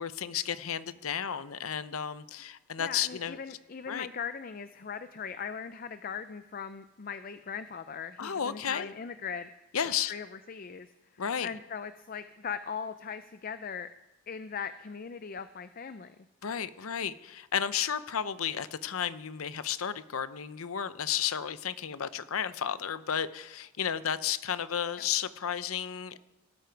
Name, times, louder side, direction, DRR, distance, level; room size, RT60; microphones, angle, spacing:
voice 1, 0.0-3.4 3.9-4.1 8.2-8.9 9.7-10.1 11.2-11.5 16.4-26.2, left 8 dB, 85° left, 14 dB, 0.7 m, -33 dB
voice 2, 2.8-9.5 10.1-10.9 11.1-13.9 14.3-16.2 25.0-25.1, left 6 dB, 45° left, 11 dB, 0.5 m, -39 dB
17.5 x 12.5 x 4.6 m, 0.98 s
head